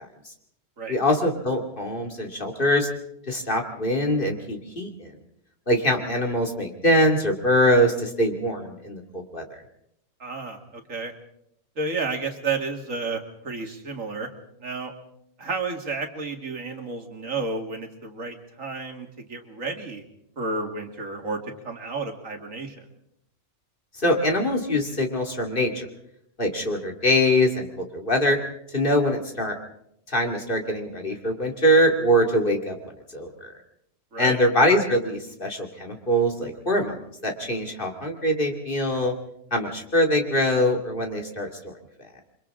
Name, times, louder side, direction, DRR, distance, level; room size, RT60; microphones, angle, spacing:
voice 1, 0.9-2.9 3.3-5.1 5.7-9.4 24.0-25.9 26.4-28.4 28.7-29.6 30.1-32.8 33.1-33.5 34.2-37.0 37.2-39.1 39.5-41.7, equal, 40° left, 2 dB, 2.7 m, -23 dB
voice 2, 10.2-11.1 11.8-14.3 14.6-14.9 15.4-20.0 20.4-22.9 34.1-34.4, right 3 dB, 80° right, 4 dB, 2.5 m, -31 dB
28.5 x 24.0 x 3.8 m, 0.75 s
omnidirectional pair, 1.4 m